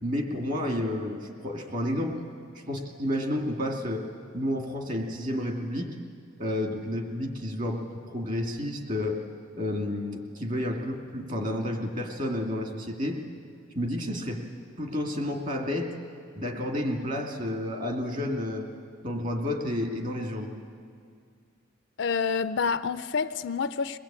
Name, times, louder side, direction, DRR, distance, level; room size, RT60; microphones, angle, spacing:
voice 1, 0.0-2.2 2.7-4.0 4.3-5.9 6.4-9.2 9.5-13.2 13.7-14.4 14.8-15.9 16.4-18.7 19.0-20.5, left 1 dB, 40° right, 2.6 m, -30 dB
voice 2, 22.0-24.0, left 5 dB, 60° left, 0.5 m, -28 dB
23.0 x 19.5 x 8.8 m
head